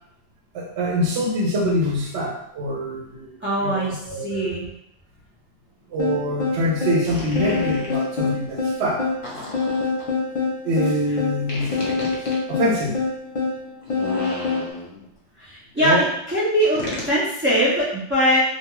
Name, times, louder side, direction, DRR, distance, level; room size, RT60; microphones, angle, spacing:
voice 1, 0.5-4.6 5.9-9.1 10.6-11.8 12.5-13.0 15.8-16.1, equal, 85° right, -2 dB, 1.0 m, -24 dB
voice 2, 3.4-4.6 15.4-16.0 16.3-18.4, equal, 15° right, -10 dB, 0.4 m, -21 dB
sound 1, 6.0-14.7, left 4 dB, 40° left, 0.5 m, -25 dB
sound 2, 7.1-8.1 9.2-10.1 11.5-12.4 13.8-15.1 16.8-17.2, left 2 dB, 60° left, 0.9 m, -33 dB
2.4 x 2.2 x 2.9 m, 0.72 s
omnidirectional pair, 1.1 m